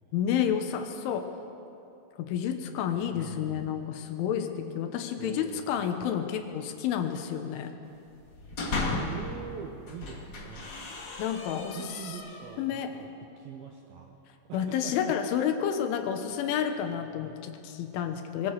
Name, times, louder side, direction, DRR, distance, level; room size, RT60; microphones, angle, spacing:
voice 1, 0.1-1.3 2.2-7.8 11.2-12.2 12.6-12.9 14.5-18.5, left 8 dB, 80° left, 6 dB, 3.5 m, -30 dB
voice 2, 2.9-3.7 5.1-5.7 9.1-10.7 11.7-14.2 14.5-15.1, right 7 dB, 75° right, 2 dB, 2.2 m, -43 dB
sound 1, 8.2-9.3 9.8-12.6, left 2 dB, 50° left, 1.3 m, -35 dB
22.0 x 15.0 x 7.9 m, 2.7 s
omnidirectional pair, 5.6 m